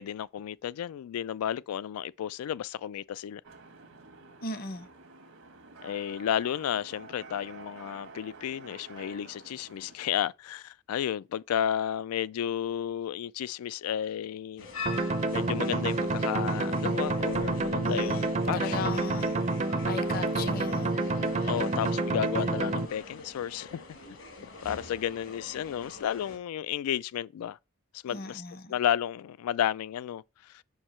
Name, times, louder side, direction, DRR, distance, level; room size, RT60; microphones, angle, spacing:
voice 1, 0.0-3.4 5.8-14.7 15.0-18.9 21.4-23.8 24.4-27.6 27.9-28.4 28.7-30.6, left 10 dB, 90° left, 0.3 m, -32 dB
sound 1, 3.4-10.0, right 3 dB, 80° right, 1.2 m, -49 dB
voice 2, 4.4-4.9 17.8-19.4 19.9-21.0 28.1-28.7, left 3 dB, 45° left, 0.7 m, -37 dB
sound 2, 14.6-26.4, left 3 dB, 60° left, 1.3 m, -44 dB
sound 3, 14.9-22.9, right 2 dB, 30° right, 0.5 m, -28 dB
5.4 x 4.6 x 4.3 m
head